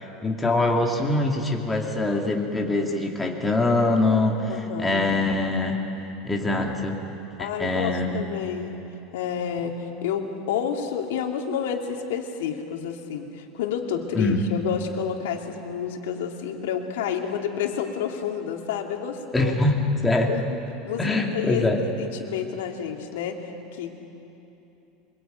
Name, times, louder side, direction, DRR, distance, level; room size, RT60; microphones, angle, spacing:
voice 1, 0.0-5.8 6.2-7.0 7.4-8.2 14.1-14.5 19.3-20.3 21.0-21.8, left 2 dB, 10° left, 1 dB, 2.5 m, -23 dB
voice 2, 4.5-5.1 7.4-8.8 9.1-19.5 20.3-20.4 20.8-21.7 22.0-23.9, left 8 dB, 90° left, 2 dB, 2.7 m, -30 dB
24.5 x 22.0 x 9.1 m, 3.0 s
supercardioid pair, 150°, 0 cm